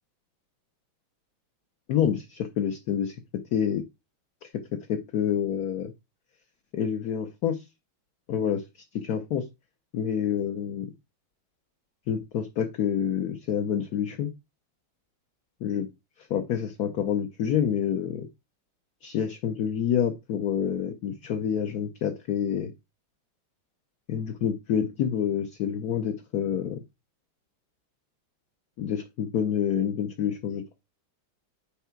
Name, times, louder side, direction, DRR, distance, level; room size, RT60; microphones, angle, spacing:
voice 1, 1.9-3.2 3.5-3.8 4.9-5.9 6.7-7.6 8.3-9.5 9.9-10.9 12.1-14.3 15.6-15.9 16.2-18.3 19.0-22.7 24.1-26.8 28.8-30.8, left 8 dB, 60° left, 6 dB, 1.2 m, -28 dB
9.3 x 4.8 x 4.5 m, 0.23 s
omnidirectional pair, 2.2 m